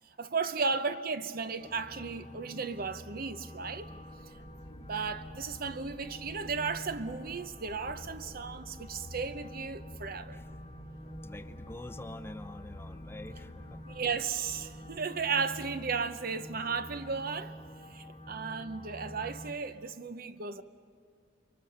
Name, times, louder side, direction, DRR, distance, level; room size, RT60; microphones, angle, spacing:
voice 1, 0.2-3.9 4.9-10.4 13.9-17.6 17.9-20.6, right 5 dB, 55° right, 0.8 m, -35 dB
sound 1, 1.6-19.5, equal, 30° left, 1.2 m, -47 dB
sound 2, 3.8-15.0, left 1 dB, 65° left, 1.3 m, -53 dB
voice 2, 4.0-4.3 4.7-4.8 10.3-10.5 11.2-13.9 18.3-18.4, left 1 dB, 15° left, 0.6 m, -47 dB
Bowed string instrument, 13.2-17.4, left 1 dB, 80° right, 1.9 m, -62 dB
29.5 x 23.0 x 6.6 m
head